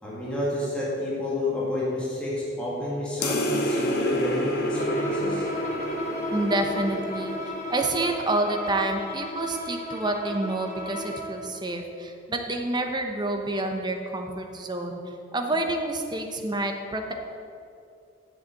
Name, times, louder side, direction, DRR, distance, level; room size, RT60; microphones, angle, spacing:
voice 1, 0.0-5.4, left 1 dB, 5° left, -8 dB, 2.1 m, -29 dB
sound 1, 3.2-8.1, equal, 55° left, 1.2 m, -29 dB
Bowed string instrument, 4.8-11.4, equal, 40° left, 1.6 m, -35 dB
voice 2, 6.3-15.0 15.3-17.1, right 2 dB, 25° right, 4 dB, 0.9 m, -28 dB
7.9 x 6.7 x 7.5 m, 2.6 s
head